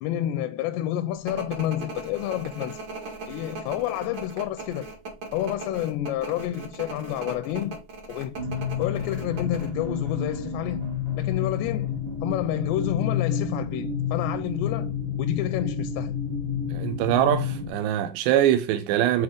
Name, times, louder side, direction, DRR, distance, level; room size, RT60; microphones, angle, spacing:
voice 1, 0.0-2.8 3.3-4.9 5.3-7.8 8.1-8.4 8.8-10.9 11.1-16.2, left 12 dB, 85° left, 2.7 m, -29 dB
sound 1, 1.3-9.7, right 3 dB, 50° right, 1.4 m, -38 dB
sound 2, 8.3-17.7, left 7 dB, 70° right, 0.5 m, -29 dB
voice 2, 16.7-19.2, right 12 dB, 90° right, 2.9 m, -23 dB
7.9 x 4.1 x 3.5 m
omnidirectional pair, 4.9 m